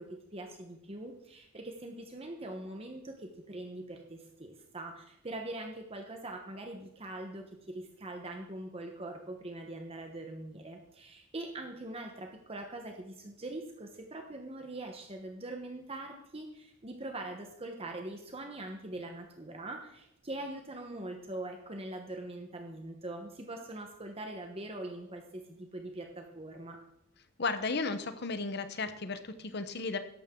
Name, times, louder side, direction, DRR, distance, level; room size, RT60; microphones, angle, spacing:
voice 1, 0.0-26.8, right 2 dB, 30° right, 3 dB, 1.1 m, -42 dB
voice 2, 27.4-30.0, left 3 dB, 55° left, 10 dB, 1.0 m, -34 dB
13.5 x 11.5 x 3.8 m, 0.83 s
head